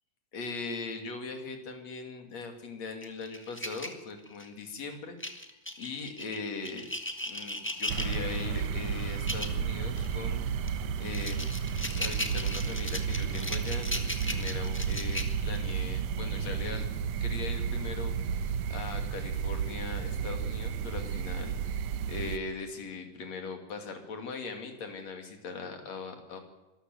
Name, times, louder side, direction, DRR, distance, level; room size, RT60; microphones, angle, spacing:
voice 1, 0.3-6.8 7.3-10.4 11.0-11.5 12.0-16.9 17.2-18.1 18.7-21.5 22.1-26.4, left 4 dB, 55° left, 5 dB, 3.7 m, -40 dB
sound 1, 3.0-4.6 5.2-8.4 9.1-9.6 10.0-10.1 10.7-15.7, left 1 dB, 10° left, 0.6 m, -37 dB
sound 2, 7.9-22.4, right 7 dB, 65° right, 2.0 m, -32 dB
25.0 x 13.5 x 7.8 m, 1.0 s
omnidirectional pair, 3.7 m